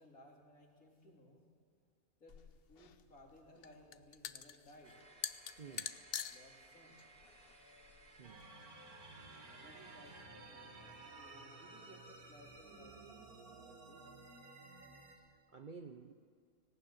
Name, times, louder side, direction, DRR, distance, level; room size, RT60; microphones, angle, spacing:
voice 1, 0.0-1.5 2.2-2.4 2.7-5.0 5.6-5.8 6.3-7.0 9.5-10.2 10.5-14.1 15.1-15.3, left 1 dB, 70° left, -1 dB, 3.7 m, -61 dB
sound 1, 2.3-8.4, left 8 dB, 55° left, 0.8 m, -47 dB
sound 2, 4.8-10.3, right 1 dB, 30° right, 3.0 m, -62 dB
voice 2, 5.6-6.0 8.2-8.5 15.5-16.1, right 5 dB, 45° right, 7 dB, 0.7 m, -51 dB
sound 3, 8.2-15.2, right 3 dB, 85° right, 2.4 m, -55 dB
18.5 x 18.0 x 9.0 m, 2.2 s
omnidirectional pair, 1.5 m